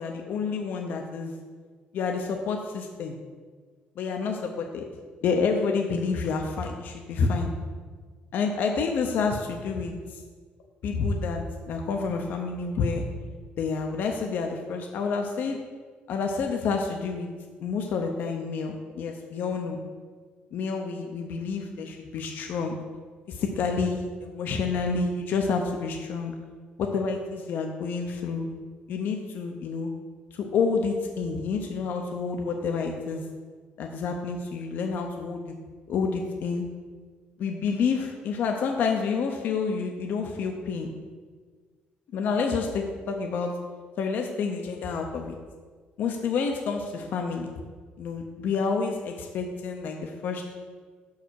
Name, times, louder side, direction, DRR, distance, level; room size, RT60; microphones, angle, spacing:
voice 1, 0.0-1.3 1.9-3.1 4.0-4.8 5.2-7.5 8.3-10.0 10.8-13.0 13.6-15.6 16.1-17.3 17.6-19.8 20.5-22.8 23.3-26.3 26.8-28.5 28.9-29.9 30.3-33.2 33.8-35.5 35.9-36.7 37.4-40.9 42.1-43.5 44.0-45.4 46.0-47.5 48.0-50.6, left 5 dB, 65° left, 3 dB, 0.7 m, -29 dB
5.6 x 4.7 x 6.3 m, 1.5 s
cardioid pair, 130°, 3 cm